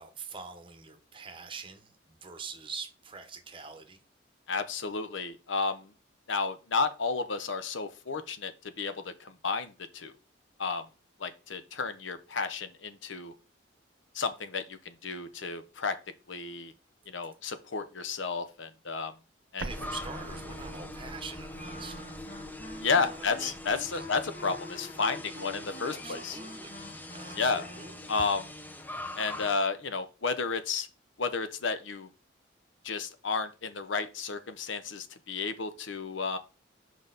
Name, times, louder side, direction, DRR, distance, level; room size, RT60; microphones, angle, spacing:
voice 1, 0.0-4.0 19.6-22.2 22.9-24.1 25.8-26.8 27.1-28.1, right 5 dB, 25° right, 8 dB, 0.9 m, -45 dB
voice 2, 4.5-5.9 6.3-8.5 8.8-10.1 10.6-10.8 11.2-13.3 14.1-16.0 16.3-16.7 17.1-19.1 19.5-19.7 22.8-26.4 27.4-27.6 28.1-28.5 29.2-30.9 31.2-32.1 32.8-36.4, left 4 dB, 75° left, 10 dB, 0.8 m, -32 dB
Explosion, 19.6-24.4, right 2 dB, 75° right, 0.8 m, -45 dB
sound 1, 19.7-29.6, left 1 dB, 10° left, 0.5 m, -43 dB
Wind instrument woodwind instrument, 21.5-28.1, left 1 dB, 55° left, 1.8 m, -47 dB
6.3 x 5.1 x 3.9 m, 0.33 s
head